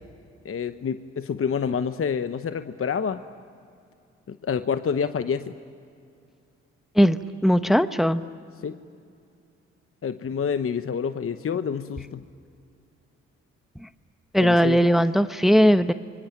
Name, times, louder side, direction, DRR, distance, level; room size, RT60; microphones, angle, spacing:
voice 1, 0.4-3.2 4.3-5.5 8.6-8.7 10.0-12.2 14.4-14.8, left 6 dB, 45° left, 10 dB, 1.0 m, -28 dB
voice 2, 6.9-8.2 13.8-13.9 14.3-15.9, equal, ahead, 11 dB, 1.0 m, -19 dB
28.0 x 24.0 x 8.9 m, 2.5 s
supercardioid pair, 50°, 31 cm